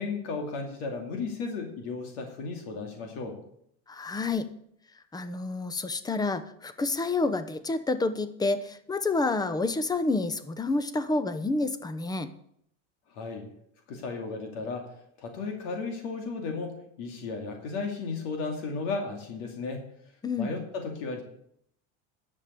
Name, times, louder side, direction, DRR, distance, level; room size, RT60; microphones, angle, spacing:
voice 1, 0.0-3.4 13.1-13.5 13.9-14.9 15.2-19.8 20.4-21.2, left 4 dB, 75° left, 3 dB, 2.5 m, -34 dB
voice 2, 3.9-4.5 5.1-12.3 20.2-20.5, left 3 dB, 10° left, 12 dB, 0.7 m, -29 dB
10.5 x 7.1 x 8.3 m, 0.71 s
supercardioid pair, 135°, 37 cm